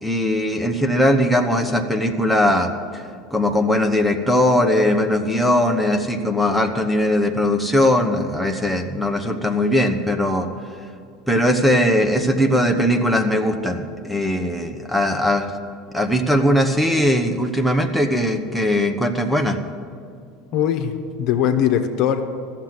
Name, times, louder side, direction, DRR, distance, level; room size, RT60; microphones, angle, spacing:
voice 1, 0.0-3.0 3.3-10.5 11.3-15.5 15.9-19.6, left 1 dB, ahead, 6 dB, 1.0 m, -19 dB
voice 2, 20.5-22.2, left 9 dB, 55° left, 6 dB, 1.1 m, -20 dB
13.0 x 7.4 x 9.5 m, 2.3 s
supercardioid pair, 100°, 0 cm